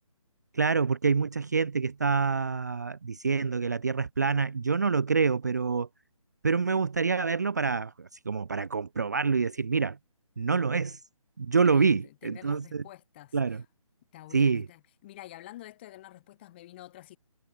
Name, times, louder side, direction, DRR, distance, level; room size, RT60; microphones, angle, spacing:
voice 1, 0.5-5.9 6.4-10.0 10.4-11.0 11.4-12.8 13.3-13.6 14.3-14.7, right 5 dB, 30° right, 0.5 m, -26 dB
voice 2, 11.7-13.4 14.1-17.2, left 15 dB, 20° left, 6.1 m, -48 dB
hypercardioid pair, 175°, 18 cm